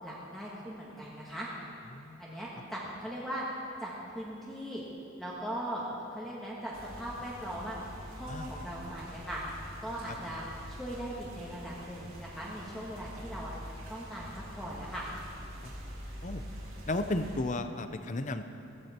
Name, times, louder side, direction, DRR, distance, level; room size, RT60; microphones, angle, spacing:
voice 1, 0.0-1.5 2.2-3.4 3.8-4.8 5.2-5.8 6.1-7.8 8.1-9.4 9.8-13.5 13.9-15.1, right 1 dB, ahead, -7 dB, 1.8 m, -39 dB
voice 2, 1.9-2.3 8.3-8.5 10.1-10.2 16.2-16.4 16.9-18.4, left 2 dB, 35° left, 9 dB, 0.7 m, -34 dB
sound 1, 6.7-17.4, equal, 90° right, 3.9 m, -45 dB
15.5 x 15.5 x 4.5 m, 2.9 s
head